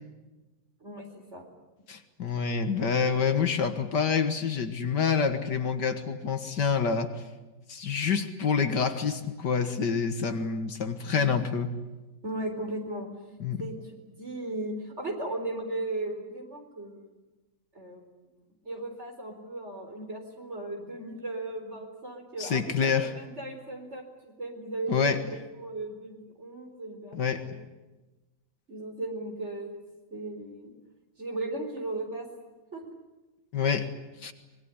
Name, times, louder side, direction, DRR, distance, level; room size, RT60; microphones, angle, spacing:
voice 1, 0.8-1.5 11.1-11.2 12.2-13.1 13.6-17.1 17.7-18.1 18.6-27.6 28.7-29.8 30.1-30.7 31.2-32.3 32.7-32.8, right 2 dB, 35° right, 4 dB, 4.7 m, -37 dB
voice 2, 1.9-7.1 7.7-11.7 13.4-13.6 22.4-23.1 24.9-25.2 27.1-27.5 33.5-33.9 34.2-34.3, left 6 dB, 65° left, 8 dB, 2.1 m, -27 dB
25.0 x 21.5 x 9.9 m, 1.1 s
omnidirectional pair, 2.0 m